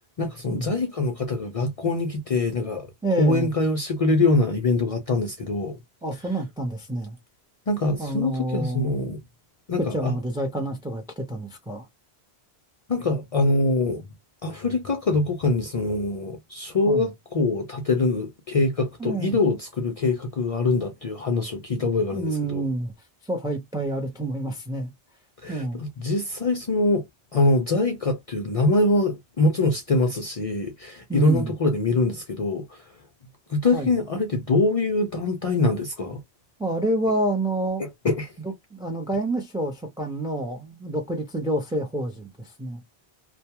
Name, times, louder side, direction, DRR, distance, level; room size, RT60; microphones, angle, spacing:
voice 1, 0.2-2.9 3.2-5.8 7.7-9.2 9.7-10.1 12.9-14.0 14.4-22.6 25.4-27.1 27.3-32.8 33.5-36.2 37.8-38.3, left 2 dB, 50° left, 0.4 m, -24 dB
voice 2, 3.0-3.6 6.0-7.2 8.0-8.9 9.8-11.9 16.9-17.1 19.0-19.4 22.1-22.9 23.2-24.9 25.5-25.8 31.1-31.5 33.7-33.9 36.6-37.9 38.4-42.8, right 1 dB, 5° right, 0.5 m, -28 dB
2.2 x 2.2 x 2.8 m
omnidirectional pair, 1.1 m